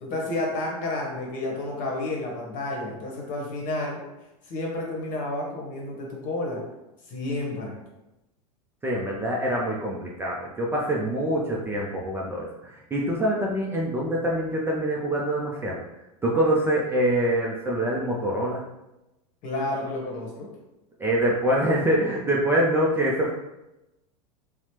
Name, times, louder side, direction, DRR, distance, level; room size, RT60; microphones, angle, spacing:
voice 1, 0.0-4.0 4.5-6.6 7.1-7.7 19.4-20.5, left 2 dB, 45° left, -1 dB, 1.0 m, -30 dB
voice 2, 8.8-15.8 16.2-18.6 21.0-23.3, right 1 dB, 10° right, -3 dB, 0.3 m, -25 dB
3.1 x 2.0 x 2.9 m, 0.95 s
hypercardioid pair, 115°, 19 cm